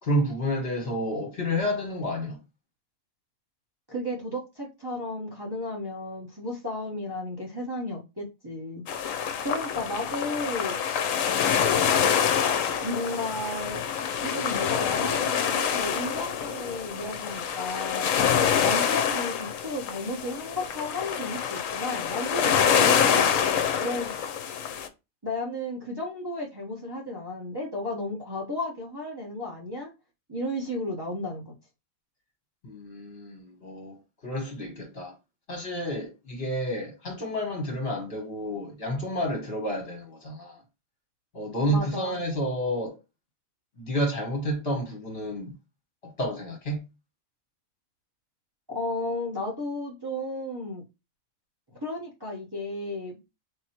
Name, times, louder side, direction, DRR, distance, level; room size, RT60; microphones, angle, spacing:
voice 1, 0.0-2.4 32.6-34.0 34.2-35.1 35.5-40.6 41.3-43.0 43.8-45.5 46.0-46.8, equal, 45° left, 1.7 m, -30 dB
voice 2, 3.9-8.8 9.4-10.8 12.8-13.8 14.2-18.1 18.6-23.3 23.8-24.1 25.2-29.9 30.3-31.5 41.7-42.2 48.7-50.8 51.8-53.2, left 1 dB, 20° right, 1.1 m, -33 dB
sound 1, 8.9-24.9, left 8 dB, 75° left, 1.0 m, -26 dB
3.8 x 3.0 x 4.4 m
omnidirectional pair, 1.4 m